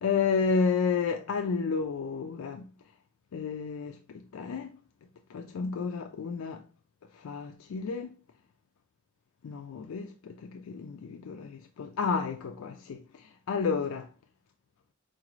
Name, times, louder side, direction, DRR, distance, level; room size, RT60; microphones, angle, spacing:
voice 1, 0.0-2.6 3.3-4.7 5.3-6.6 7.1-8.1 9.4-14.1, left 5 dB, 85° left, 0.4 m, -31 dB
3.9 x 2.5 x 3.0 m
head